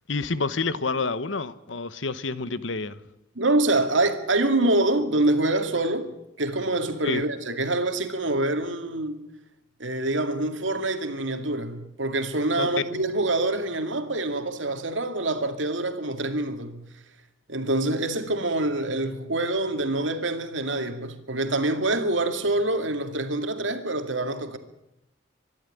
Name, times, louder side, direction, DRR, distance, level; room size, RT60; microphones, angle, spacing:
voice 1, 0.1-3.0 7.0-7.2 12.5-12.7, left 3 dB, 80° left, 1.1 m, -28 dB
voice 2, 3.4-6.1 6.4-9.2 9.8-16.8 17.5-24.6, right 2 dB, 85° right, 2.3 m, -25 dB
24.5 x 11.5 x 10.0 m
head